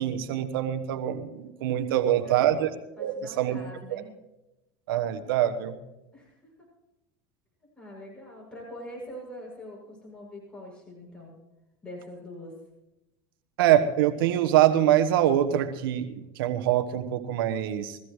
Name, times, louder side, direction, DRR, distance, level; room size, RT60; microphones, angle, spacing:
voice 1, 0.0-2.7 3.0-3.6 3.9-4.0 4.9-5.8 13.6-18.0, right 11 dB, 85° right, 9 dB, 1.3 m, -24 dB
voice 2, 1.9-2.6 3.0-4.1 6.1-6.5 7.8-11.3 11.8-12.5, left 1 dB, 10° left, -4 dB, 7.6 m, -44 dB
23.0 x 15.0 x 3.3 m, 0.96 s
supercardioid pair, 105°, 12 cm